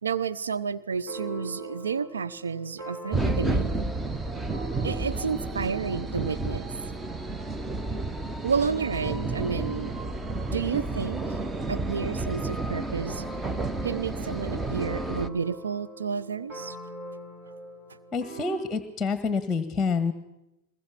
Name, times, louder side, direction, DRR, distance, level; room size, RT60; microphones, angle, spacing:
voice 1, 0.0-3.7 4.8-6.7 8.4-10.0 10.5-11.4 11.7-13.2 13.8-16.8 17.9-18.0, right 6 dB, 80° right, 13 dB, 0.7 m, -31 dB
sound 1, 0.9-5.6 13.1-18.6, right 1 dB, 45° right, 6.3 m, -42 dB
sound 2, 3.1-15.3, right 3 dB, 15° right, 1.0 m, -31 dB
voice 2, 18.1-20.1, left 4 dB, 15° left, 10 dB, 1.5 m, -27 dB
22.0 x 20.5 x 6.0 m, 0.92 s
hypercardioid pair, 100°, 0 cm